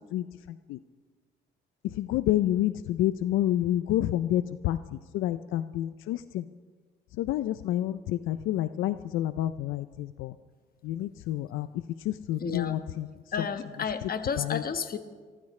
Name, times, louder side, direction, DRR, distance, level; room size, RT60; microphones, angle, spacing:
voice 1, 0.1-0.8 1.8-6.4 7.2-10.3 10.8-11.7 12.0-13.1 14.4-14.6, left 13 dB, 90° left, 13 dB, 0.5 m, -29 dB
voice 2, 12.4-12.8 13.3-15.0, left 6 dB, 50° left, 9 dB, 1.3 m, -31 dB
28.5 x 14.5 x 3.2 m, 1.5 s
cardioid pair, 90°, 20 cm